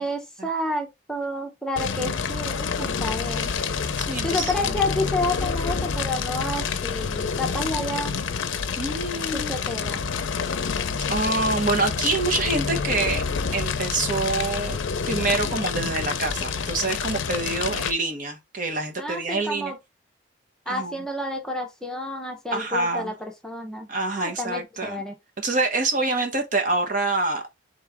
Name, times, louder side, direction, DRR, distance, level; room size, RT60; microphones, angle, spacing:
voice 1, 0.0-3.5 4.2-8.1 9.3-10.0 19.0-19.8 20.7-23.9 24.2-25.2, left 1 dB, 5° left, 0.8 m, -30 dB
Fire, 1.8-17.9, left 5 dB, 80° left, 0.5 m, -28 dB
voice 2, 4.0-4.8 8.8-9.5 11.1-13.2 13.5-14.8 15.1-19.7 20.7-20.9 22.5-23.1 23.9-25.0 25.4-27.4, right 3 dB, 45° right, 0.9 m, -26 dB
3.9 x 3.1 x 3.4 m
head